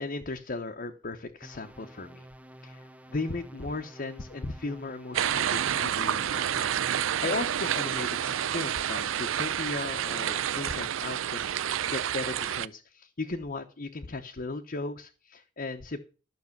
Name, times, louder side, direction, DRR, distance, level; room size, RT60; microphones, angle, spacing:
voice 1, 0.0-2.3 2.6-6.7 7.0-11.5 11.9-16.0, left 3 dB, 45° left, 4 dB, 0.9 m, -36 dB
sound 1, 1.4-9.0, right 1 dB, 5° right, 0.7 m, -50 dB
sound 2, 5.1-12.7, right 9 dB, 85° right, 0.5 m, -29 dB
12.0 x 6.2 x 7.2 m, 0.35 s
head